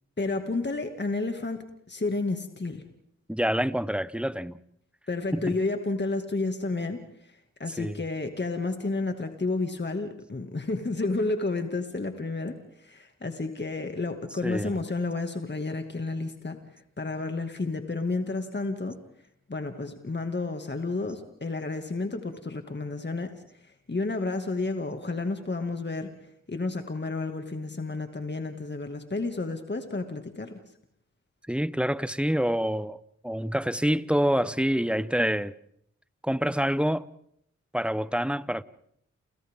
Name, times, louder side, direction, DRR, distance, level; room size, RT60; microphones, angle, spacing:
voice 1, 0.2-2.8 5.1-16.6 17.0-19.0 19.5-26.1 26.5-30.6, left 3 dB, 35° left, 2.3 m, -31 dB
voice 2, 3.3-4.6 5.3-5.6 7.8-8.0 14.4-14.7 31.5-35.5 36.2-37.1 37.7-38.6, equal, 5° right, 1.0 m, -27 dB
29.0 x 29.0 x 3.8 m
cardioid pair, 40°, 31 cm